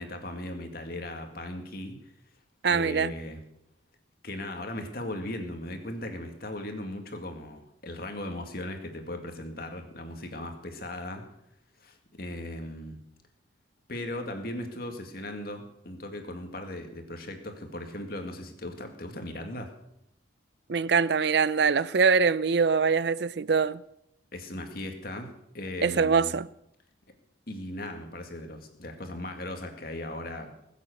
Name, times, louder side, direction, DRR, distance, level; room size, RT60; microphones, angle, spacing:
voice 1, 0.0-2.0 2.7-3.4 4.2-11.2 11.8-13.0 13.9-19.7 24.3-25.3 25.5-26.3 27.5-30.5, left 1 dB, 50° left, 2.2 m, -38 dB
voice 2, 2.6-3.1 20.7-23.8 25.8-26.5, right 5 dB, 60° right, 0.5 m, -23 dB
20.5 x 8.2 x 6.6 m
head